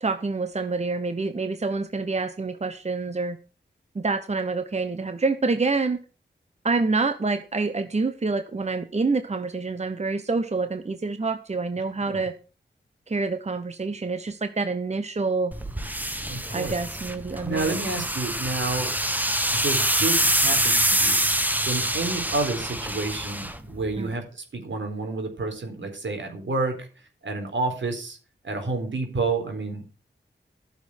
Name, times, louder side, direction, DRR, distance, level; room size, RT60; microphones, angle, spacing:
voice 1, 0.0-3.4 3.9-6.0 6.6-12.3 13.1-15.5 16.5-17.7 24.0-24.1, right 3 dB, 35° right, 10 dB, 1.0 m, -27 dB
sound 1, 15.5-24.1, right 1 dB, 10° right, 1.5 m, -25 dB
voice 2, 16.3-16.8 17.4-18.9 19.5-21.2 21.7-26.9 27.2-28.2 28.4-29.9, right 3 dB, 80° right, 4 dB, 4.2 m, -29 dB
14.0 x 7.0 x 6.2 m, 0.35 s
wide cardioid pair, 80°, 19 cm